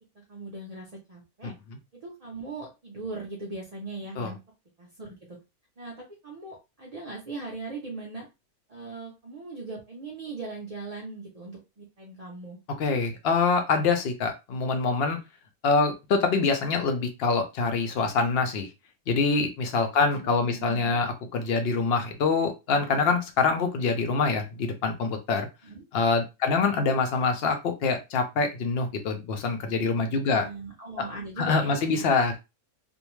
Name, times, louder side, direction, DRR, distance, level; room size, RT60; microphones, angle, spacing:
voice 1, 0.3-1.5 1.9-4.4 4.8-5.4 5.8-8.3 8.7-12.6 20.2-21.0 25.6-25.8 26.6-26.8 30.4-32.1, right 3 dB, 50° right, -2 dB, 0.4 m, -39 dB
voice 2, 12.8-15.2 15.6-18.7 19.1-25.5 25.9-30.5 31.4-32.4, left 4 dB, 70° left, 6 dB, 0.6 m, -25 dB
2.6 x 2.1 x 3.0 m, 0.25 s
omnidirectional pair, 1.5 m